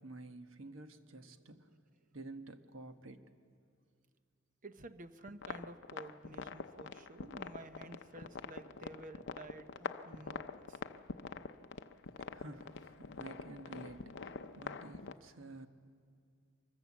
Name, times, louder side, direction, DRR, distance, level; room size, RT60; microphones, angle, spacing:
voice 1, 0.0-1.8 2.1-3.3 12.2-15.7, right 2 dB, 70° right, 1.2 m, -51 dB
voice 2, 4.6-10.8, right 2 dB, 40° right, 0.8 m, -52 dB
sound 1, 5.3-15.1, left 4 dB, 60° left, 0.6 m, -46 dB
24.5 x 21.5 x 7.4 m
head